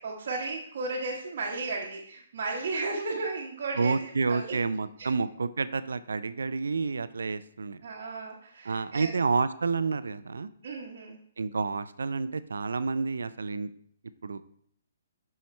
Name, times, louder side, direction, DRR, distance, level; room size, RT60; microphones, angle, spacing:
voice 1, 0.0-4.6 5.0-5.1 7.8-9.1 10.6-11.2, right 3 dB, 60° right, -4 dB, 1.0 m, -34 dB
voice 2, 3.8-7.8 8.6-10.5 11.4-13.7 14.2-14.4, right 4 dB, 85° right, 14 dB, 0.4 m, -29 dB
7.1 x 5.6 x 3.2 m, 0.65 s
hypercardioid pair, 145°, 0 cm